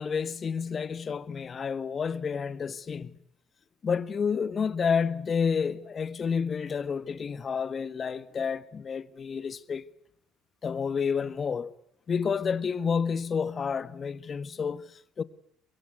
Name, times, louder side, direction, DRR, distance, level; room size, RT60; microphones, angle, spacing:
voice 1, 0.0-3.2 3.8-9.8 10.6-11.7 12.1-15.2, left 6 dB, 40° left, 1.5 m, -30 dB
24.5 x 22.0 x 9.6 m
supercardioid pair, 70°, 0 cm